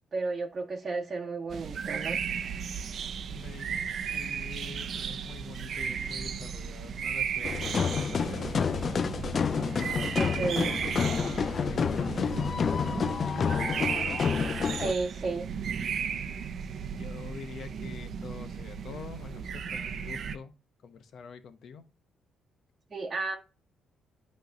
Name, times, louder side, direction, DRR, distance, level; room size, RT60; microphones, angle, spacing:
voice 1, 0.1-2.2 10.1-10.7 14.7-15.5 22.9-23.4, right 3 dB, 35° right, 1.1 m, -32 dB
sound 1, 1.5-20.4, right 7 dB, 60° right, 0.6 m, -35 dB
voice 2, 3.3-9.1 10.8-13.5 17.0-20.5 20.8-21.8, left 6 dB, 65° left, 0.9 m, -46 dB
sound 2, 7.4-14.9, left 6 dB, 45° left, 0.3 m, -29 dB
9.3 x 3.2 x 5.2 m
cardioid pair, 90°, 0 cm